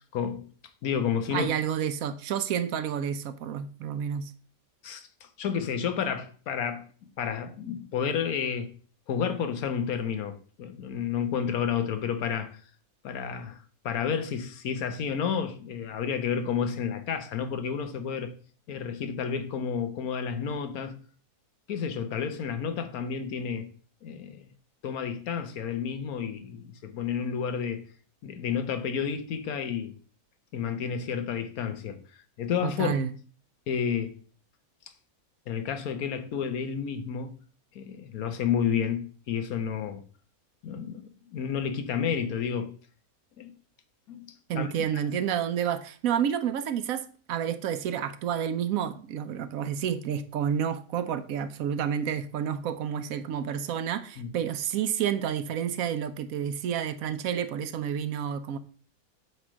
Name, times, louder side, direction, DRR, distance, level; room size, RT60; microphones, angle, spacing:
voice 1, 0.1-0.5 0.8-1.5 4.8-6.9 7.2-8.7 9.1-12.6 13.0-18.3 18.7-21.0 21.7-23.7 24.0-24.5 24.8-27.9 28.2-30.0 30.5-32.0 32.4-33.0 33.7-34.1 35.5-37.4 37.7-40.0 40.6-42.7 43.4-43.5 44.1-44.7 54.2-54.3, left 7 dB, 75° left, 1.3 m, -31 dB
voice 2, 1.3-4.3 32.6-33.1 44.5-58.6, right 8 dB, 75° right, 1.0 m, -30 dB
7.9 x 3.2 x 6.1 m
omnidirectional pair, 1.6 m